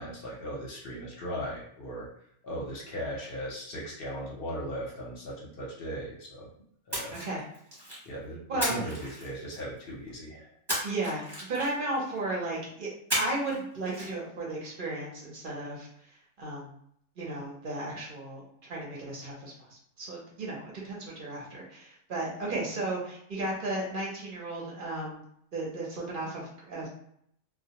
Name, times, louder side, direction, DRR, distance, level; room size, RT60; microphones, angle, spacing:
voice 1, 0.0-2.1 2.4-6.5 6.9-7.2 8.1-10.5, equal, 55° left, -3 dB, 0.7 m, -38 dB
Splash splatter, 6.9-8.1 8.6-9.8 10.7-12.0 13.1-13.6 13.8-14.1, equal, 20° right, 0.9 m, -34 dB
voice 2, 7.1-7.4 8.5-8.9 10.8-15.9 16.4-16.7 17.2-25.2 25.5-26.9, right 2 dB, 50° right, -4 dB, 0.7 m, -34 dB
2.2 x 2.1 x 2.8 m, 0.69 s
omnidirectional pair, 1.5 m